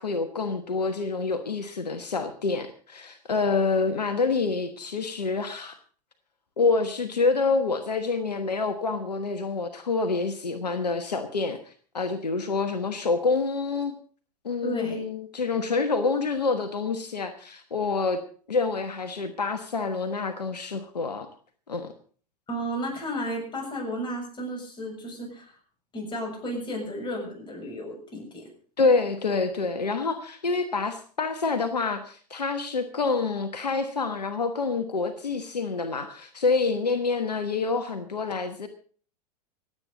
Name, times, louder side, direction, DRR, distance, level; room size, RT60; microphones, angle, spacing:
voice 1, 0.0-5.8 6.6-11.6 11.9-13.9 14.4-18.2 18.5-21.3 21.7-21.9 28.8-38.7, left 4 dB, 80° left, 8 dB, 1.3 m, -27 dB
voice 2, 14.6-15.0 22.5-25.5 25.9-28.5, equal, 25° left, 1 dB, 7.1 m, -33 dB
26.0 x 8.9 x 3.9 m, 0.43 s
figure-of-eight pair, 90°, 20 cm